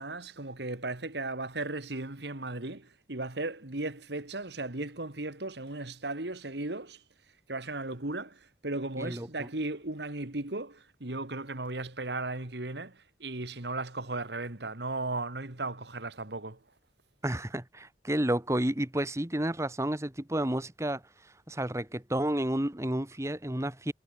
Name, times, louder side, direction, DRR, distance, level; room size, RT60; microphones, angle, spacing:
voice 1, 0.0-7.0 7.5-16.6, right 2 dB, 65° right, 2.2 m, -36 dB
voice 2, 9.0-9.5 17.2-21.0 21.5-23.9, right 1 dB, 15° right, 1.4 m, -31 dB
head